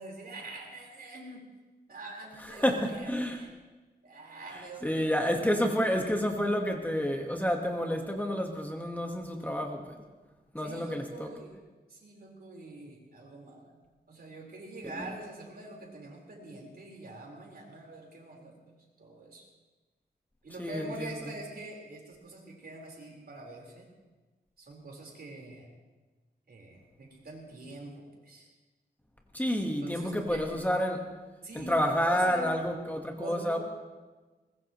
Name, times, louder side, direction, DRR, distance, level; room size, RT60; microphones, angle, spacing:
voice 1, 0.0-1.4 1.9-3.5 4.0-5.8 10.6-11.6 11.9-19.5 20.4-23.9 24.6-25.7 26.5-28.5 29.8-30.8 31.4-32.5 33.2-33.6, right 2 dB, 60° right, -1 dB, 4.4 m, -45 dB
voice 2, 2.4-3.4 4.5-9.9 10.5-11.3 14.9-15.1 20.6-21.2 29.3-31.0 31.5-33.6, equal, 10° left, 2 dB, 1.5 m, -29 dB
22.5 x 20.5 x 3.1 m, 1.2 s
wide cardioid pair, 125°, 17 cm